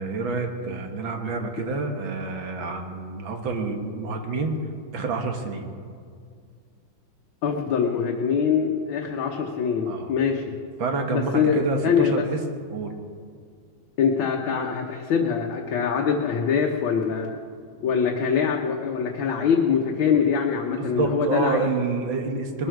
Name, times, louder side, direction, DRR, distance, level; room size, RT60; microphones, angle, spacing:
voice 1, 0.0-4.6 4.9-5.7 9.9-10.1 10.8-12.4 12.7-12.9 20.8-22.7, right 3 dB, 70° right, 4 dB, 2.1 m, -28 dB
voice 2, 7.4-10.4 11.1-12.2 14.0-17.3 17.8-21.6, left 6 dB, 70° left, 0 dB, 1.8 m, -23 dB
20.5 x 13.0 x 4.7 m, 2.2 s
omnidirectional pair, 2.3 m